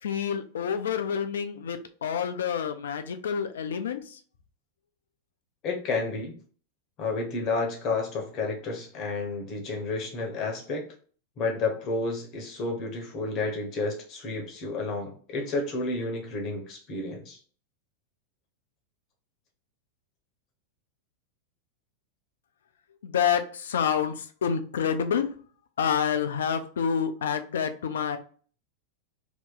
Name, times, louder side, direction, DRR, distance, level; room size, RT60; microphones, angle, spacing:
voice 1, 0.0-4.2 23.0-25.4 25.8-28.2, left 7 dB, 65° left, 8 dB, 0.4 m, -28 dB
voice 2, 5.6-6.3 7.0-10.9 11.4-17.4, left 3 dB, 35° left, 1 dB, 0.8 m, -31 dB
2.8 x 2.2 x 3.8 m, 0.43 s
figure-of-eight pair, 90°, 0 cm